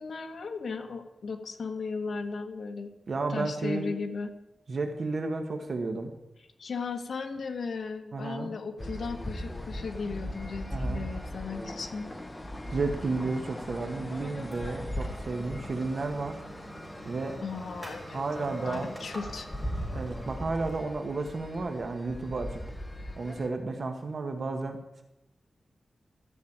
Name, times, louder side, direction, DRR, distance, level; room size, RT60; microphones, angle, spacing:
voice 1, 0.0-2.9 3.3-4.3 6.6-12.1 17.4-19.5, left 4 dB, 65° left, 6 dB, 1.4 m, -36 dB
voice 2, 3.1-3.9 4.7-6.1 8.1-8.5 10.7-11.0 12.7-16.4 17.0-17.4 18.1-18.9 19.9-22.6 23.2-25.0, right 3 dB, 50° right, 5 dB, 1.4 m, -32 dB
sound 1, 8.8-23.5, equal, 15° left, 1.4 m, -39 dB
sound 2, 14.5-23.5, right 1 dB, ahead, 5.0 m, -47 dB
13.5 x 6.3 x 8.6 m, 0.96 s
wide cardioid pair, 115°, 0 cm